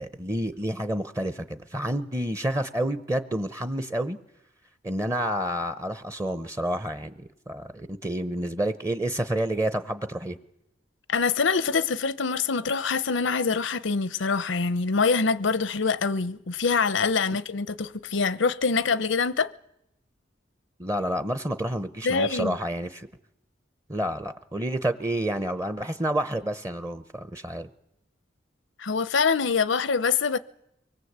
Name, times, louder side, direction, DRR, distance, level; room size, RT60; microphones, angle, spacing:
voice 1, 0.0-4.2 4.8-10.4 20.8-23.1 23.9-27.7, right 1 dB, 15° right, 0.8 m, -29 dB
voice 2, 11.1-19.5 22.0-22.5 28.8-30.4, left 5 dB, 80° left, 0.8 m, -25 dB
24.0 x 20.0 x 8.1 m
head